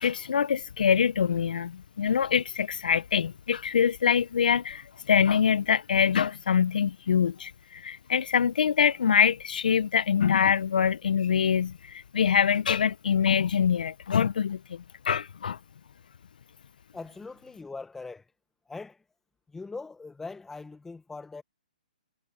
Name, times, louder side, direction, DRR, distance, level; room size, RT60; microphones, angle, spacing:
voice 1, 0.0-15.6, left 7 dB, 70° left, 1.2 m, -24 dB
voice 2, 16.9-18.2 18.7-19.0 19.5-21.4, left 3 dB, 5° left, 1.3 m, -41 dB
hypercardioid pair, 135°, 5 cm